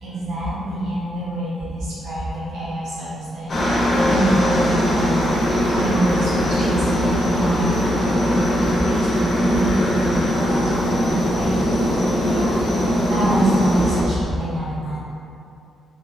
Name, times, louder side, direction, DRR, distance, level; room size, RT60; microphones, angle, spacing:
voice 1, 0.0-5.4 5.7-7.0 7.3-10.6 10.9-11.8 12.3-12.5 13.1-15.0, right 1 dB, 80° right, -10 dB, 0.6 m, -26 dB
Aircraft, 3.5-14.0, equal, 35° left, 0.5 m, -20 dB
3.0 x 2.1 x 2.6 m, 2.6 s
cardioid pair, 155°, 0 cm